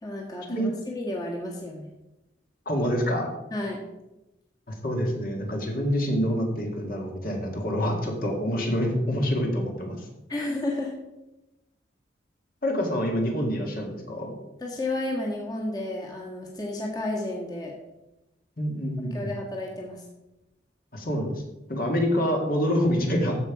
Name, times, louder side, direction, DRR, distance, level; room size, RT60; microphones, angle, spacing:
voice 1, 0.0-1.9 3.5-3.8 10.3-10.9 14.6-17.7 19.1-20.0, left 2 dB, 20° left, -2 dB, 1.7 m, -32 dB
voice 2, 2.7-3.3 4.7-10.1 12.6-14.4 18.6-19.3 20.9-21.4 21.7-23.4, equal, 50° left, 1 dB, 1.9 m, -26 dB
14.5 x 5.4 x 4.8 m, 0.96 s
head